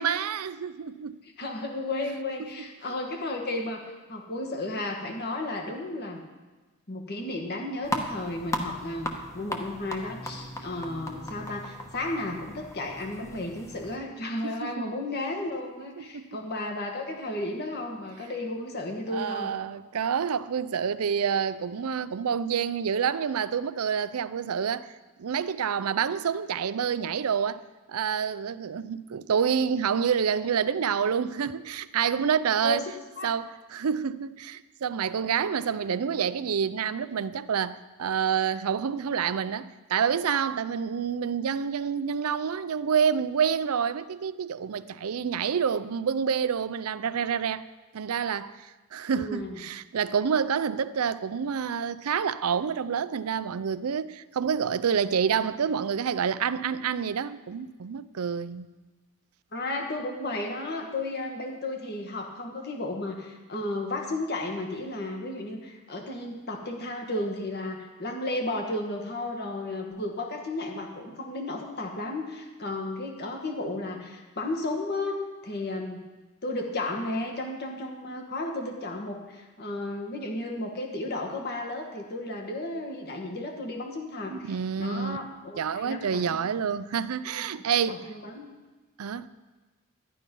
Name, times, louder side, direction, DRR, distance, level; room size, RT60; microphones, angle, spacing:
voice 1, 0.0-1.2 2.4-2.7 14.4-14.9 16.0-16.2 19.1-24.9 25.2-27.6 27.9-32.8 33.2-47.6 47.9-58.7 84.3-85.2 85.6-88.0 89.0-89.3, right 7 dB, 85° right, 0.5 m, -28 dB
voice 2, 1.4-6.2 6.9-19.5 32.6-32.8 33.2-33.3 49.1-49.6 59.5-75.1 75.4-76.0 76.4-86.5 87.3-88.5, left 2 dB, 50° left, 1.6 m, -33 dB
sound 1, 7.8-14.0, left 1 dB, 15° left, 1.1 m, -37 dB
11.5 x 11.0 x 5.3 m
head